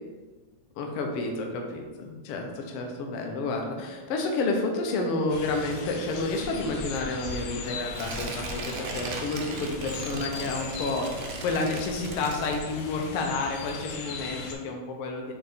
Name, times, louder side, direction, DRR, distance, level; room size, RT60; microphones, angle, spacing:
voice 1, 0.7-15.3, left 3 dB, 65° left, 2 dB, 1.4 m, -30 dB
sound 1, 5.3-14.5, left 4 dB, 85° left, 2.2 m, -39 dB
Tearing, 7.9-13.0 13.4-13.5, right 4 dB, 85° right, 1.2 m, -38 dB
7.9 x 3.2 x 4.3 m, 1.4 s
omnidirectional pair, 3.4 m